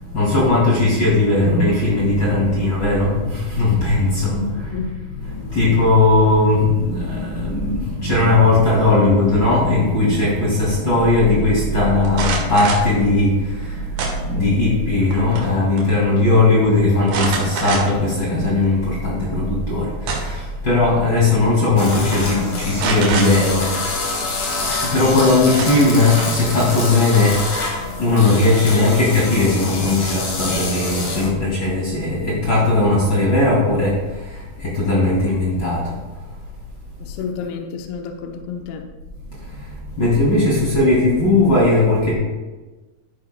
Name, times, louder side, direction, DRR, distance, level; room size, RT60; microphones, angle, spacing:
voice 1, 0.1-4.5 5.2-13.8 14.2-23.7 24.9-27.4 28.0-34.0 34.6-35.8 40.0-42.1, left 2 dB, 40° left, -5 dB, 1.6 m, -17 dB
voice 2, 4.3-4.9 37.0-38.8, left 5 dB, 80° left, 4 dB, 2.2 m, -30 dB
sound 1, 12.1-12.9 14.0-14.6 15.0-15.5 15.8-15.9 17.1-18.1 18.6-18.7 19.7-20.5 21.5-21.6 21.9-22.2 22.8-23.3 25.0-25.1 25.6-26.4, right 4 dB, 65° right, 3.4 m, -25 dB
sound 2, 21.8-31.3, left 3 dB, 65° left, 1.3 m, -27 dB
13.5 x 9.7 x 2.2 m, 1.2 s
omnidirectional pair, 5.6 m